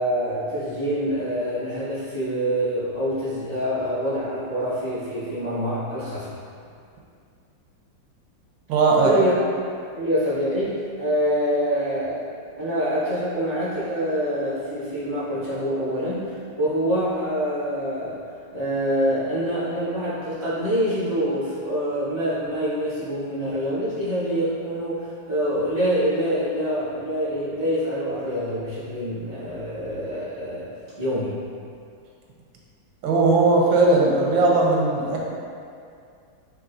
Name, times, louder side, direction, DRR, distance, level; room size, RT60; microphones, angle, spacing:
voice 1, 0.0-6.3 9.0-9.3 9.9-18.2 18.5-30.7 31.0-31.4, equal, 20° left, -14 dB, 1.0 m, -26 dB
voice 2, 8.7-9.2 33.0-35.2, right 3 dB, 85° right, -2 dB, 1.4 m, -18 dB
4.8 x 2.8 x 2.5 m, 2.3 s
omnidirectional pair, 2.1 m